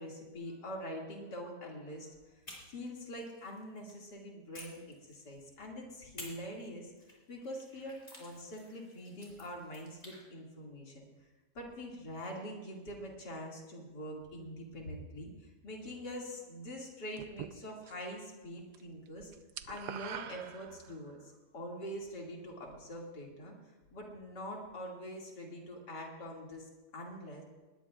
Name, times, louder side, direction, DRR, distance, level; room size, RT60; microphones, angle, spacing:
voice 1, 0.0-2.1 2.7-6.9 7.3-11.0 11.5-19.3 19.7-21.2 21.5-23.5 23.9-27.4, equal, 90° left, -2 dB, 3.0 m, -44 dB
sound 1, 2.4-4.0 4.5-5.6 6.2-10.2, left 1 dB, 30° left, 5.0 m, -53 dB
sound 2, 17.2-18.2 18.5-18.8 19.1-21.1, right 9 dB, 80° right, 1.3 m, -45 dB
20.0 x 20.0 x 2.4 m, 1.2 s
omnidirectional pair, 1.8 m